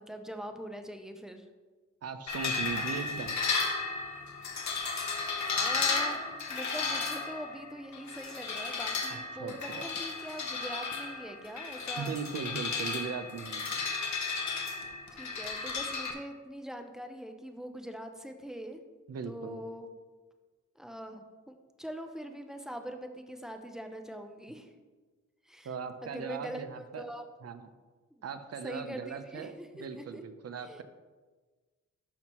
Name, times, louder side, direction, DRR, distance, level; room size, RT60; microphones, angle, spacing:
voice 1, 0.0-1.5 5.5-12.2 15.1-18.8 19.2-19.9 20.8-24.7 25.5-25.7 26.0-27.2 28.6-30.2 30.6-30.8, equal, ahead, 5 dB, 0.6 m, -43 dB
voice 2, 2.0-3.4 9.1-9.9 12.0-13.8 19.1-19.6 25.6-27.0 27.4-27.7 28.2-30.8, right 6 dB, 55° right, 10 dB, 0.6 m, -39 dB
sound 1, 2.3-16.1, left 4 dB, 70° left, 1.1 m, -34 dB
11.5 x 5.9 x 3.0 m, 1.4 s
wide cardioid pair, 150°, 30 cm